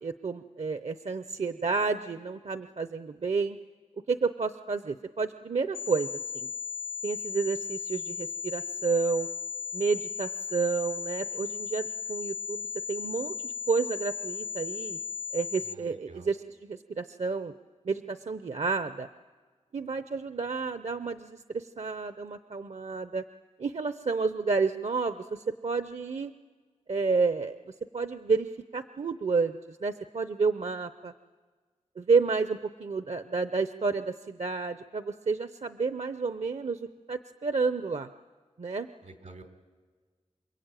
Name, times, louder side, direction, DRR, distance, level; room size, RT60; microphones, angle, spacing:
voice 1, 0.0-3.6 4.1-6.5 7.0-9.3 9.7-15.0 15.3-16.4 16.7-17.5 17.8-19.1 19.7-23.2 23.6-26.3 26.9-27.6 27.9-31.1 32.0-38.1 38.6-38.9, right 4 dB, 65° right, 10 dB, 0.7 m, -30 dB
sound 1, 5.7-15.7, left 6 dB, 55° left, 0.7 m, -36 dB
voice 2, 15.6-16.3 39.0-39.4, right 3 dB, 90° right, 4 dB, 3.6 m, -49 dB
28.0 x 22.5 x 9.1 m, 1.5 s
cardioid pair, 50°, 12 cm